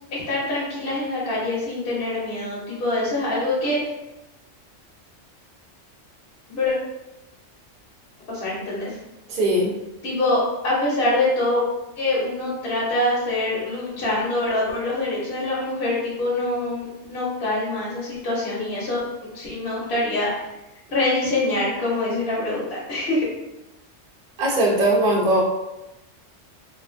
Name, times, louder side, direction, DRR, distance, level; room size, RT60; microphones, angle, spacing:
voice 1, 0.1-3.8 6.5-6.7 8.3-9.0 10.0-11.6 12.0-19.0 19.3-20.5 20.9-23.3, left 2 dB, 55° left, -5 dB, 0.9 m, -24 dB
voice 2, 9.3-9.7 24.4-25.4, right 1 dB, 50° right, -3 dB, 0.6 m, -19 dB
2.4 x 2.4 x 2.4 m, 0.95 s
omnidirectional pair, 1.3 m